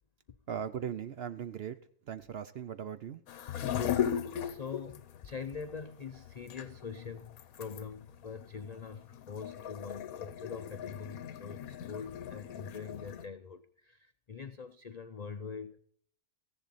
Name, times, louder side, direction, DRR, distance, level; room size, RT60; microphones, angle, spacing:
voice 1, 0.5-1.8 2.1-3.2, right 8 dB, 60° right, 0.6 m, -38 dB
sound 1, 3.3-13.3, left 9 dB, 75° left, 1.3 m, -38 dB
voice 2, 3.7-15.8, left 6 dB, 90° left, 0.3 m, -43 dB
14.5 x 10.5 x 4.1 m
omnidirectional pair, 1.5 m